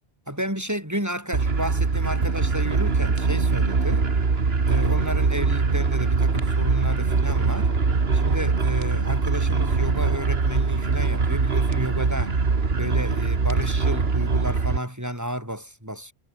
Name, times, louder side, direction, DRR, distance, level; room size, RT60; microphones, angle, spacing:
voice 1, 0.3-4.0 4.7-7.7 8.1-12.4 12.7-16.1, equal, 15° right, 5.7 m, -31 dB
sound 1, 1.3-14.8, right 4 dB, 70° right, 2.1 m, -22 dB
omnidirectional pair, 1.1 m